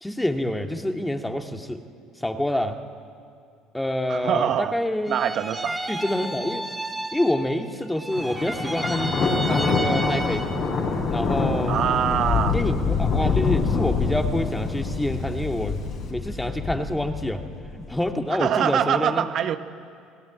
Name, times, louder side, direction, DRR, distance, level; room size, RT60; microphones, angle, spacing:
voice 1, 0.0-1.8 2.2-2.8 3.7-5.2 5.9-6.6 7.1-10.5 11.1-11.8 12.5-15.8 16.1-17.5 17.7-19.3, left 1 dB, 10° left, 5 dB, 2.0 m, -27 dB
voice 2, 4.1-4.7 5.1-5.8 11.7-12.6 18.4-19.6, right 9 dB, 55° right, 9 dB, 1.0 m, -24 dB
sound 1, 5.0-7.7 7.9-10.7, right 1 dB, 10° right, 2.8 m, -32 dB
Thunder, 8.1-18.0, left 4 dB, 55° left, 5.9 m, -25 dB
28.5 x 18.5 x 9.0 m, 2.3 s
supercardioid pair, 75°, 0 cm